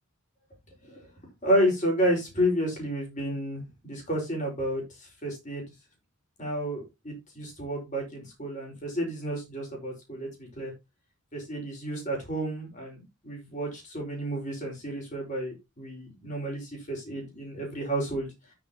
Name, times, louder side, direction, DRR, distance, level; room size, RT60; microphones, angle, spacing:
voice 1, 1.4-5.6 6.4-10.7 11.3-13.0 13.2-18.3, equal, 35° left, 0 dB, 5.1 m, -31 dB
10.0 x 9.4 x 3.0 m, 0.23 s
head